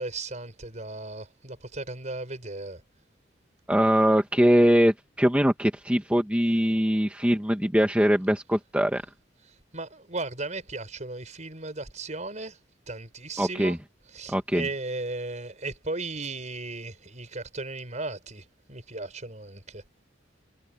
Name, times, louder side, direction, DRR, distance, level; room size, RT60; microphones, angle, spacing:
voice 1, 0.0-2.8 9.7-12.6 12.9-13.8 14.1-19.8, right 2 dB, 40° right, 5.4 m, -36 dB
voice 2, 3.7-9.0 13.4-13.8 14.3-14.7, equal, 5° right, 1.3 m, -22 dB
head